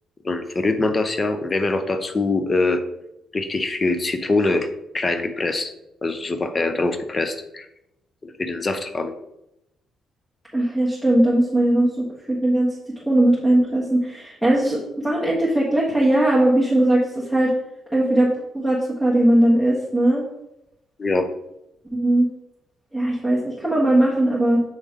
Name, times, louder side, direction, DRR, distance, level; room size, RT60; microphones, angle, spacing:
voice 1, 0.2-2.8 3.3-4.7 4.9-5.7 6.0-7.7 8.2-9.1 21.0-21.3, left 2 dB, 30° left, 8 dB, 0.7 m, -23 dB
voice 2, 10.5-12.7 13.1-17.5 17.9-18.3 18.5-20.2 21.9-22.3 22.9-24.6, right 1 dB, 5° left, -5 dB, 1.4 m, -19 dB
7.6 x 3.3 x 3.7 m, 0.86 s
cardioid pair, 90°, 0 cm